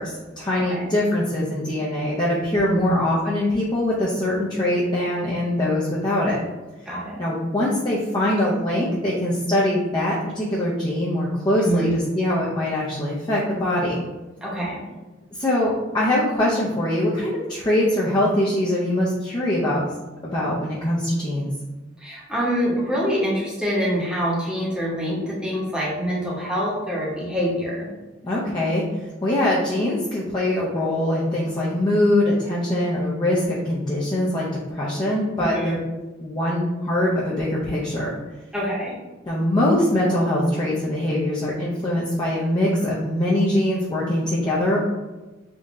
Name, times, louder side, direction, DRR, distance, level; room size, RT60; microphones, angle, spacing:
voice 1, 0.0-6.4 7.2-14.0 15.3-19.8 20.2-21.5 28.2-28.8 29.2-35.8 36.2-38.1 39.3-44.8, left 1 dB, 20° left, -6 dB, 0.5 m, -23 dB
voice 2, 6.9-7.2 11.6-11.9 14.4-14.8 22.0-27.9 35.5-35.8 38.5-39.0, equal, 5° right, -5 dB, 0.9 m, -25 dB
3.8 x 2.7 x 3.6 m, 1.1 s
head